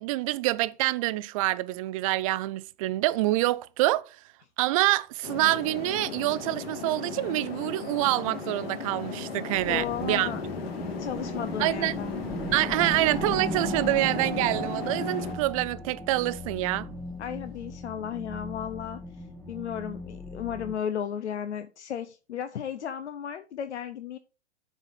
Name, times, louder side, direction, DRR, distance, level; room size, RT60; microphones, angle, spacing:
voice 1, 0.0-4.2 4.6-10.3 11.6-11.9 12.5-16.9, right 17 dB, 30° right, 0.4 m, -26 dB
sound 1, 5.2-15.3, left 5 dB, 60° left, 1.9 m, -36 dB
sound 2, 9.5-20.7, equal, 5° left, 0.9 m, -37 dB
voice 2, 9.7-10.4 11.0-12.2 17.2-19.0 19.5-24.2, left 9 dB, 75° left, 0.7 m, -34 dB
7.1 x 4.2 x 5.2 m
hypercardioid pair, 120°, 34 cm